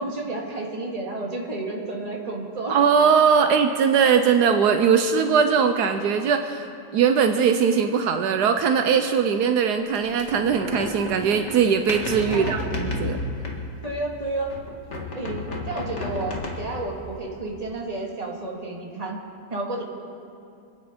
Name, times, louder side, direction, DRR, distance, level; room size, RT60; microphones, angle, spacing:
voice 1, 0.0-2.8 3.4-3.5 12.3-12.7 13.8-14.5 15.1-19.2 19.5-19.8, right 2 dB, 25° right, -1 dB, 2.1 m, -31 dB
voice 2, 2.7-6.7 6.9-13.2, right 6 dB, 80° right, 7 dB, 1.3 m, -20 dB
sound 1, 9.9-14.1 14.5-16.9, left 2 dB, 45° left, 2.2 m, -32 dB
26.5 x 9.4 x 5.1 m, 2.5 s
omnidirectional pair, 1.7 m